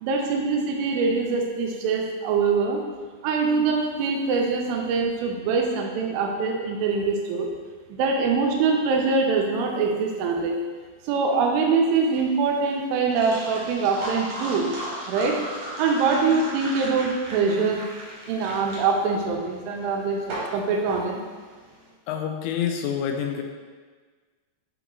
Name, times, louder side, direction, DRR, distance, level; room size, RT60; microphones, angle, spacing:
voice 1, 0.0-2.8 3.2-7.5 7.9-10.6 11.1-14.7 15.1-15.4 15.8-17.9 18.3-21.2, right 4 dB, 85° right, 1 dB, 3.1 m, -24 dB
sound 1, 11.9-21.8, right 1 dB, 70° right, 1.6 m, -36 dB
voice 2, 22.1-23.4, left 8 dB, 85° left, 3 dB, 2.9 m, -27 dB
7.9 x 3.1 x 3.8 m, 1.5 s
omnidirectional pair, 5.3 m